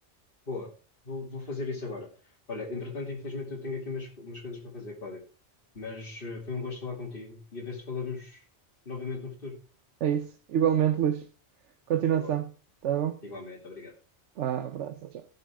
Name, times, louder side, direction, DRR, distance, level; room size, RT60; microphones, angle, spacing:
voice 1, 1.0-5.2 5.7-8.4 8.8-9.5 12.1-12.3 13.2-13.9, left 4 dB, 50° left, 2.8 m, -37 dB
voice 2, 10.0-11.3 11.9-12.5 12.8-13.2 14.4-15.2, right 9 dB, 75° right, 1.0 m, -27 dB
16.5 x 6.9 x 3.6 m
omnidirectional pair, 1.2 m